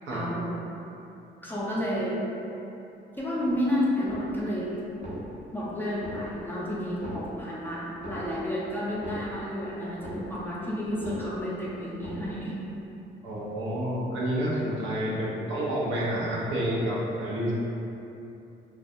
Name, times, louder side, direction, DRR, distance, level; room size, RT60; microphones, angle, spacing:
voice 1, 0.1-0.5 1.4-2.2 3.2-4.8 5.5-12.6 14.5-14.6 15.1-15.2, equal, 10° left, -7 dB, 0.4 m, -31 dB
sound 1, 4.0-4.6 4.9-5.6 5.9-6.6 6.9-7.6 7.9-8.6 8.9-9.6 9.9-10.6 10.9-11.6 11.9-12.6, equal, 35° right, 0.6 m, -41 dB
voice 2, 13.2-17.5, equal, 75° right, -7 dB, 0.5 m, -29 dB
2.3 x 2.2 x 2.6 m, 2.9 s
cardioid pair, 90°, 20 cm